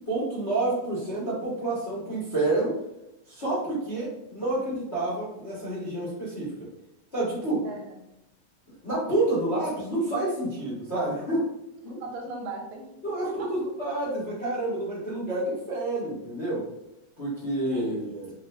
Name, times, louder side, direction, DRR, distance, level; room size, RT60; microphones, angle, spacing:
voice 1, 0.1-2.8 3.3-6.7 7.1-7.7 8.8-11.5 11.8-12.0 13.0-16.7 17.2-18.3, right 2 dB, 80° left, -9 dB, 0.5 m, -29 dB
voice 2, 7.6-8.0 9.5-9.7 12.0-12.9 13.2-13.6 13.9-14.0 17.7-18.0, right 3 dB, 80° right, 1 dB, 2.1 m, -38 dB
5.8 x 2.2 x 2.6 m, 0.87 s
omnidirectional pair, 3.4 m